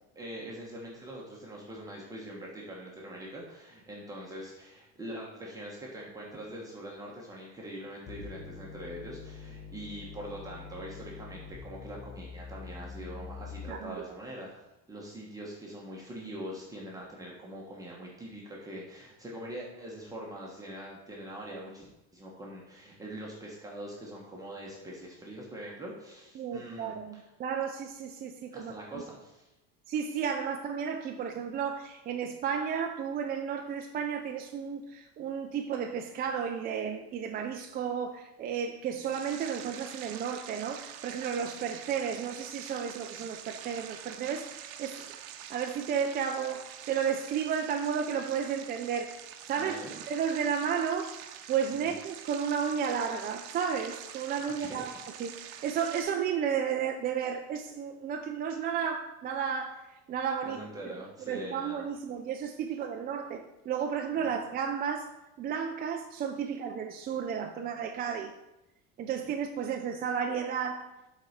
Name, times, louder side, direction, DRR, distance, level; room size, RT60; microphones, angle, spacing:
voice 1, 0.1-26.9 28.5-29.5 49.6-49.9 51.7-51.9 54.6-54.8 60.5-61.9 64.2-64.4, right 1 dB, 10° right, -4 dB, 1.3 m, -43 dB
sound 1, 8.1-14.0, left 5 dB, 20° left, 0.6 m, -45 dB
voice 2, 13.7-14.0 26.4-29.0 29.9-51.1 51.5-55.4 55.6-60.6 61.2-65.1 65.4-68.3 69.0-70.9, right 7 dB, 30° right, 4 dB, 0.4 m, -33 dB
sound 2, 39.0-56.0, right 10 dB, 80° right, 0.8 m, -46 dB
7.6 x 4.2 x 5.1 m, 0.95 s
cardioid pair, 150°, 31 cm